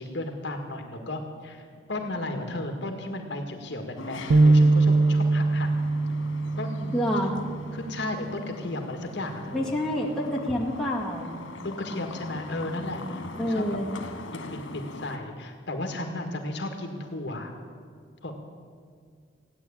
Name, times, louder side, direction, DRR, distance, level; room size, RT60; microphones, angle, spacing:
voice 1, 0.0-5.7 6.6-7.4 7.7-9.8 11.6-13.8 14.3-17.5 18.2-18.4, left 1 dB, 60° left, 4 dB, 1.8 m, -34 dB
sound 1, 3.9-15.2, left 2 dB, 85° left, 1.8 m, -42 dB
sound 2, 4.3-7.8, right 2 dB, 75° right, 0.6 m, -22 dB
voice 2, 6.9-7.3 9.5-11.4 13.4-13.9, equal, 5° left, -5 dB, 2.1 m, -27 dB
16.0 x 9.7 x 8.7 m, 2.1 s
head